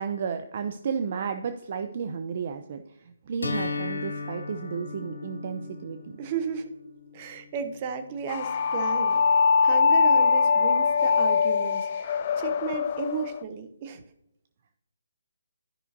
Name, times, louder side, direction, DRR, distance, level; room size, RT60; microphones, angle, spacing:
voice 1, 0.0-2.8 3.3-6.2, right 6 dB, 45° right, 8 dB, 0.6 m, -32 dB
sound 1, 3.4-9.4, left 4 dB, 90° left, 2.0 m, -37 dB
voice 2, 6.2-6.7 7.1-9.2 9.6-14.0, right 6 dB, 30° right, 7 dB, 1.0 m, -34 dB
sound 2, 8.3-13.4, left 5 dB, 40° left, 0.3 m, -22 dB
13.0 x 5.6 x 2.7 m, 0.82 s
figure-of-eight pair, 155°, 0 cm